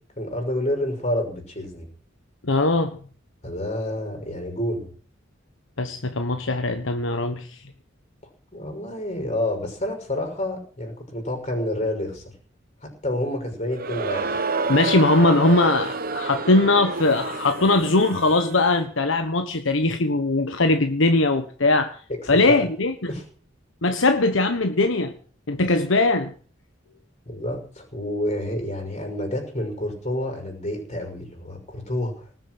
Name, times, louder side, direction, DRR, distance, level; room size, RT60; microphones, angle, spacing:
voice 1, 0.2-1.9 3.4-4.9 8.5-12.2 13.0-14.4 22.3-22.6 23.1-23.2 27.3-32.2, left 1 dB, 35° left, 6.1 m, -28 dB
voice 2, 2.4-3.0 5.8-7.5 14.7-22.0 22.3-23.1 23.8-25.1 25.5-26.3, left 2 dB, 75° left, 1.3 m, -20 dB
Crowd, 13.7-18.7, right 4 dB, 50° right, 1.1 m, -29 dB
19.0 x 7.7 x 7.9 m
head